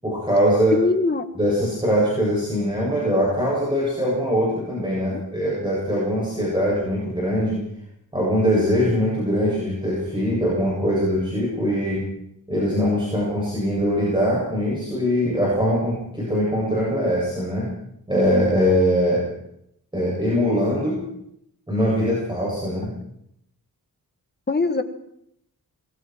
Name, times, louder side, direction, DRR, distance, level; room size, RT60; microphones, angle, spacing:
voice 1, 0.0-0.8 1.4-7.6 8.1-12.1 12.5-17.7 18.1-19.3 19.9-21.0 21.7-22.9, equal, 15° right, -5 dB, 7.6 m, -22 dB
voice 2, 0.7-1.3 5.1-5.2 24.5-24.8, left 3 dB, 30° left, 7 dB, 1.9 m, -21 dB
28.0 x 22.0 x 4.7 m, 0.76 s
wide cardioid pair, 155°, 35 cm